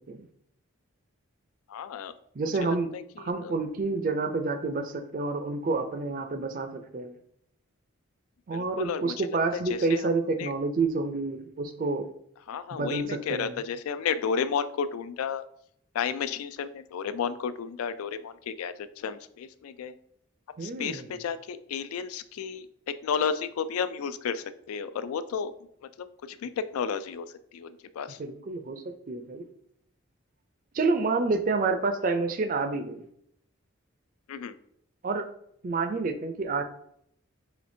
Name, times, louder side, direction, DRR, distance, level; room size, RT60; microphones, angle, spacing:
voice 1, 1.7-2.1 2.4-3.6 8.5-10.5 12.5-15.4 15.9-20.0 20.6-25.5 25.8-27.3 27.5-28.2 34.3-34.6, left 6 dB, 85° left, 14 dB, 0.3 m, -33 dB
voice 2, 2.4-2.9 3.2-7.1 8.5-12.1 12.7-13.6 20.6-21.1 28.2-29.4 30.7-33.0 35.0-35.3 35.6-36.6, right 3 dB, 40° right, 7 dB, 0.4 m, -29 dB
5.0 x 3.3 x 2.6 m, 0.71 s
head